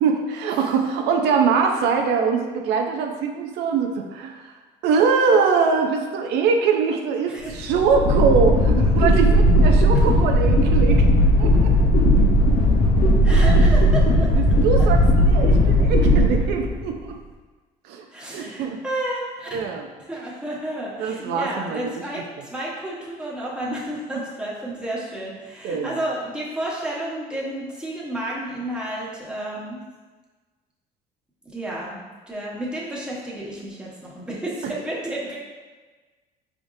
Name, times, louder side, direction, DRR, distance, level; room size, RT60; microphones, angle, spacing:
voice 1, 0.0-4.5 4.8-11.0 11.4-11.7 13.3-13.5 14.3-17.2 17.9-18.8 19.5-19.9 21.0-22.0 25.6-26.0 34.6-34.7, right 5 dB, 85° right, 3 dB, 0.5 m, -23 dB
voice 2, 1.2-1.5 7.3-7.6 13.2-14.3 18.1-19.5 20.1-29.8 31.4-32.0 32.3-35.4, right 1 dB, 5° right, -6 dB, 1.2 m, -31 dB
sound 1, 7.5-17.0, equal, 60° left, 0.8 m, -17 dB
4.9 x 3.5 x 2.6 m, 1.3 s
cardioid pair, 110°, 17 cm